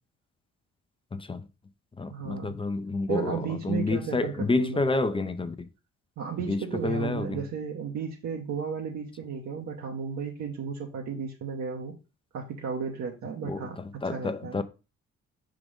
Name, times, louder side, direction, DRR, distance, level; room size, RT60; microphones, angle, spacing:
voice 1, 1.1-1.5 2.0-5.7 6.4-7.4 13.4-14.6, left 3 dB, 15° left, 0.6 m, -29 dB
voice 2, 2.1-2.5 3.1-4.8 6.2-11.9 12.3-13.8 14.1-14.6, right 6 dB, 70° right, 1.1 m, -34 dB
5.0 x 3.9 x 4.9 m
cardioid pair, 90°, 30 cm